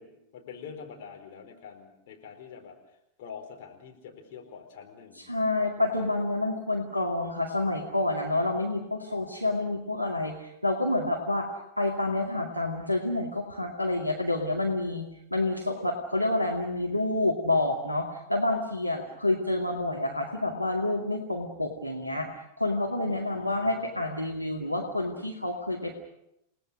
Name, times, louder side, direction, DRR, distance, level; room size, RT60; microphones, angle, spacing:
voice 1, 0.0-2.8 3.2-5.3 5.9-6.1 23.1-24.2, left 6 dB, 50° left, 3 dB, 4.5 m, -46 dB
voice 2, 5.3-11.5 11.8-22.3 22.6-25.9, left 2 dB, 90° left, 0 dB, 2.2 m, -28 dB
29.5 x 19.0 x 6.4 m, 0.81 s
figure-of-eight pair, 90°, 0 cm